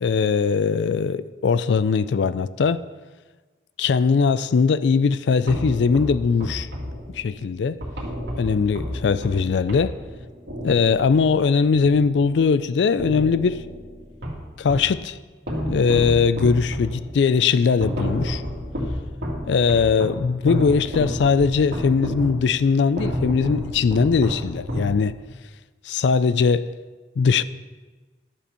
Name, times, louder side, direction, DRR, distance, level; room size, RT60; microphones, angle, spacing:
voice 1, 0.0-2.8 3.8-6.7 7.2-7.8 8.4-9.9 10.6-13.6 14.6-15.2 15.7-18.4 19.4-25.1 25.9-26.7 27.2-27.4, left 5 dB, 80° left, 0.4 m, -20 dB
sound 1, 5.5-12.6 13.0-15.0 15.5-25.4, equal, 85° right, 2.2 m, -31 dB
12.0 x 4.3 x 6.8 m
head